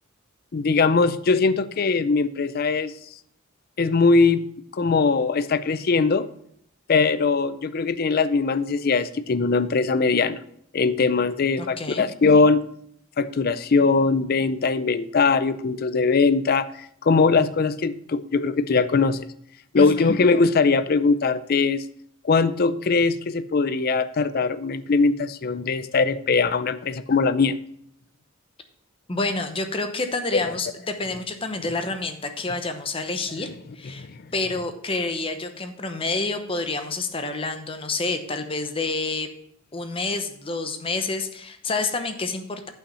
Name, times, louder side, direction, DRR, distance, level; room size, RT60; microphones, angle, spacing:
voice 1, 0.5-2.9 3.8-4.4 4.7-6.3 6.9-10.4 10.7-12.6 13.2-19.2 19.7-21.8 22.2-27.6 30.3-30.4, left 4 dB, 45° left, 13 dB, 0.5 m, -21 dB
voice 2, 11.6-12.0 19.7-20.1 29.1-33.5 33.7-39.3 39.7-42.7, left 3 dB, 25° left, 7 dB, 0.8 m, -28 dB
8.7 x 5.8 x 5.5 m, 0.69 s
head